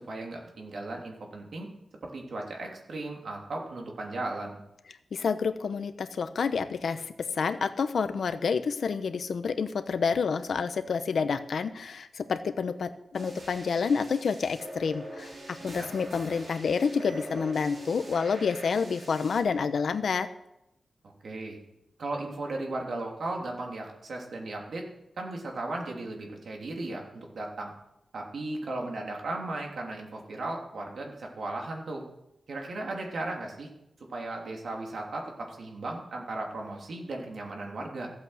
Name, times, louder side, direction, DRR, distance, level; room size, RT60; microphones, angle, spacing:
voice 1, 0.0-1.7 2.0-4.6 15.6-15.9 21.2-21.6 22.0-24.8 25.2-27.7 28.1-32.0 32.5-33.7 34.0-38.1, right 2 dB, 65° right, 0 dB, 3.0 m, -36 dB
voice 2, 5.1-20.3, left 5 dB, 75° left, 10 dB, 0.9 m, -29 dB
sound 1, 13.1-19.4, right 1 dB, 40° right, 3.1 m, -43 dB
15.0 x 8.5 x 6.5 m, 0.86 s
wide cardioid pair, 155°, 0 cm